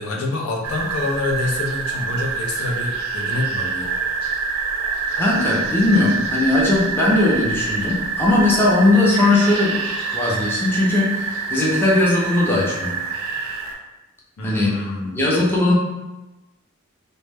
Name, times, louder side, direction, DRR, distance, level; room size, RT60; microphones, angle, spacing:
voice 1, 0.0-3.9 14.4-15.3, left 2 dB, 70° left, 0 dB, 0.4 m, -27 dB
sound 1, 0.6-13.7, right 5 dB, 85° right, 0.4 m, -26 dB
voice 2, 5.2-9.7 10.1-13.0 14.4-14.7 15.1-15.7, left 2 dB, 10° left, -5 dB, 0.5 m, -18 dB
2.1 x 2.0 x 3.2 m, 1.1 s
head